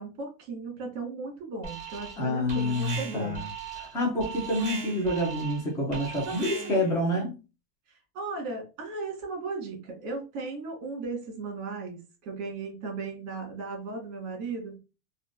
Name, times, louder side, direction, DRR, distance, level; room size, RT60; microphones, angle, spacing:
voice 1, 0.0-3.4 6.3-6.9 7.1-7.2 7.9-14.8, right 3 dB, 40° right, 2 dB, 1.5 m, -36 dB
Alarm, 1.6-2.2 2.5-6.9, right 6 dB, 20° right, 1.1 m, -39 dB
voice 2, 2.2-3.5 3.7-7.3, left 1 dB, 10° left, -1 dB, 0.5 m, -28 dB
3.6 x 2.5 x 2.5 m, 0.30 s
supercardioid pair, 165°, 39 cm